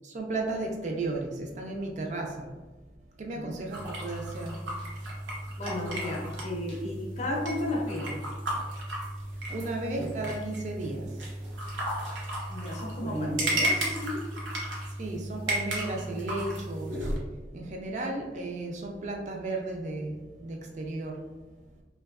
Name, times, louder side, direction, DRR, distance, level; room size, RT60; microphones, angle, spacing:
voice 1, 0.0-2.6 3.2-4.7 9.3-11.3 15.0-17.2 17.5-21.4, right 2 dB, 40° right, 1 dB, 0.3 m, -34 dB
sound 1, 3.7-17.2, right 1 dB, 80° right, 0.6 m, -34 dB
voice 2, 5.6-8.2 12.5-14.2, left 1 dB, 35° left, -1 dB, 0.4 m, -33 dB
2.6 x 2.2 x 2.3 m, 1.2 s
head